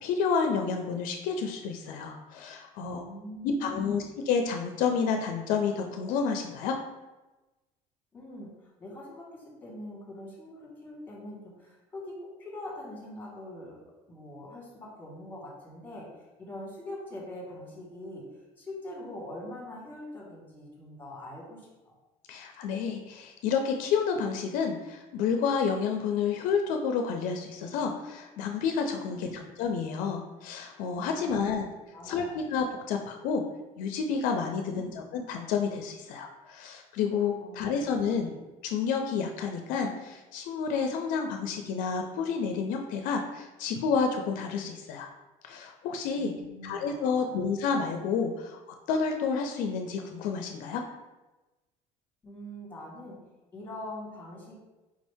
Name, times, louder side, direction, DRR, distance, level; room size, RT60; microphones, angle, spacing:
voice 1, 0.0-3.0 3.4-6.8 22.3-31.7 32.0-33.4 33.8-38.3 38.6-45.1 45.4-46.3 46.6-48.6 48.9-50.8, left 5 dB, 75° left, 4 dB, 0.4 m, -30 dB
voice 2, 2.8-4.1 8.1-13.8 14.1-21.9 29.0-29.5 31.1-31.6 31.9-32.4 34.7-35.0 37.4-37.9 38.1-38.4 46.2-47.4 52.2-53.2 53.5-54.6, left 1 dB, 15° left, -3 dB, 1.3 m, -43 dB
4.8 x 2.6 x 3.4 m, 1.1 s
cardioid pair, 135°, 14 cm